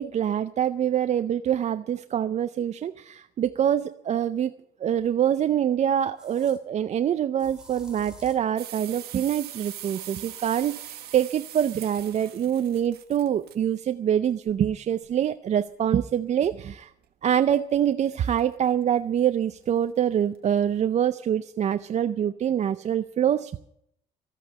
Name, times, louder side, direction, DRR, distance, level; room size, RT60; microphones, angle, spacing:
voice 1, 0.0-4.5 4.8-16.9 17.2-23.6, right 9 dB, 40° right, 11 dB, 0.5 m, -25 dB
sound 1, 5.0-5.1 6.2-6.6 7.4-8.5 9.6-11.0, right 1 dB, 5° right, 2.9 m, -50 dB
sound 2, 8.6-13.5 14.5-15.2 16.8-16.9 17.3-17.8 18.0-18.4 18.8-18.9 19.2-19.3 19.8-19.9 20.3-20.6, right 12 dB, 70° right, 1.4 m, -42 dB
14.0 x 8.4 x 9.2 m, 0.74 s
cardioid pair, 110°, 17 cm